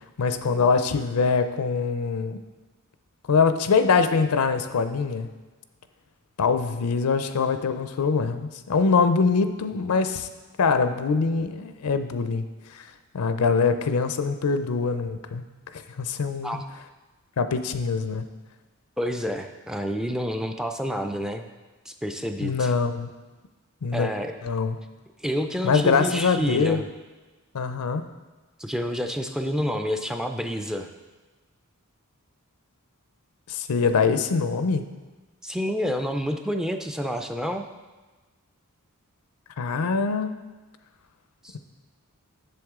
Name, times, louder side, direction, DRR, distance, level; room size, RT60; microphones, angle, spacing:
voice 1, 0.2-2.4 3.3-5.3 6.4-10.3 10.6-12.4 12.7-12.8 13.1-15.4 15.7-16.6 17.4-18.2 22.4-23.1 23.8-24.1 24.4-24.8 25.6-26.8 27.5-28.1 33.5-34.9 39.6-40.3, left 5 dB, 80° left, 10 dB, 0.5 m, -23 dB
voice 2, 19.0-21.4 21.9-22.7 23.9-24.4 25.2-26.9 28.6-30.9 35.4-37.7 41.4-41.6, equal, 5° right, 5 dB, 0.3 m, -29 dB
7.7 x 6.9 x 3.6 m, 1.2 s
head